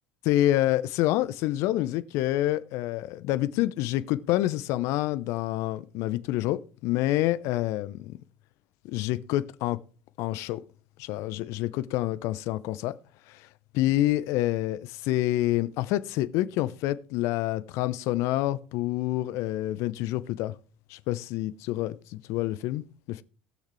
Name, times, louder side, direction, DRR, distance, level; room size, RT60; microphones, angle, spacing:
voice 1, 0.2-8.2 8.8-9.8 10.2-10.6 11.0-13.0 13.3-13.4 13.7-20.5 20.9-23.2, left 15 dB, 60° left, 0.7 m, -27 dB
19.0 x 6.5 x 3.2 m
hypercardioid pair, 70°, 6 cm